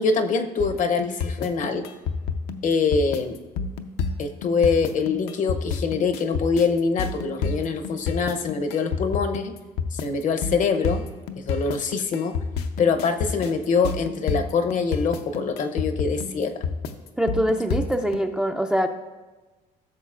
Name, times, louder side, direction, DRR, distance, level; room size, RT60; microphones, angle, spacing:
voice 1, 0.0-1.8 2.6-3.4 4.2-9.5 9.9-11.0 11.4-12.4 12.8-16.5, left 5 dB, 50° left, 8 dB, 0.7 m, -24 dB
sound 1, 0.6-18.2, left 5 dB, 80° left, 0.7 m, -29 dB
voice 2, 17.2-18.9, equal, 5° right, 5 dB, 0.4 m, -23 dB
14.5 x 6.6 x 2.4 m, 1.2 s
cardioid pair, 110°, 17 cm